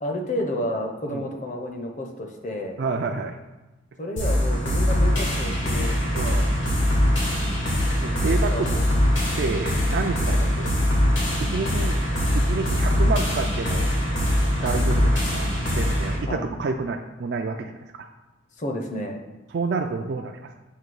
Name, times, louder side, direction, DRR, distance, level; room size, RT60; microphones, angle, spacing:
voice 1, 0.0-2.8 4.0-5.9 8.5-8.9 10.4-10.5 14.6-14.8 16.3-16.4 18.6-19.2, left 1 dB, 40° left, 3 dB, 0.8 m, -31 dB
voice 2, 2.8-3.4 6.1-6.5 8.0-8.7 9.4-10.7 11.4-12.0 12.3-13.9 14.5-18.1 19.5-20.5, right 4 dB, 55° right, 4 dB, 0.3 m, -29 dB
sound 1, 4.2-16.2, equal, 80° left, 2.4 m, -22 dB
7.3 x 3.2 x 5.3 m, 1.1 s
head